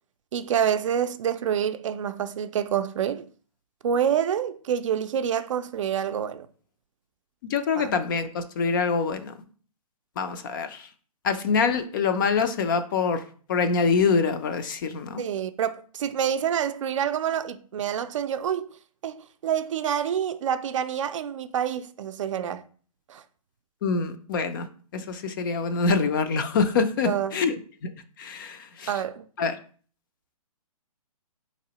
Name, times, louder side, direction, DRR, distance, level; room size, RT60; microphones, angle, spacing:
voice 1, 0.3-3.3 3.8-6.5 7.8-7.9 15.2-18.7 19.0-22.6 23.1-23.2 27.0-27.4 28.9-29.2, right 8 dB, 55° right, 0.4 m, -27 dB
voice 2, 7.5-9.3 10.2-10.9 11.2-13.2 13.5-15.2 23.8-24.7 24.9-27.9 28.2-28.9 29.4-29.6, left 5 dB, 35° left, 0.4 m, -25 dB
4.0 x 2.9 x 2.9 m
hypercardioid pair, 145°, 19 cm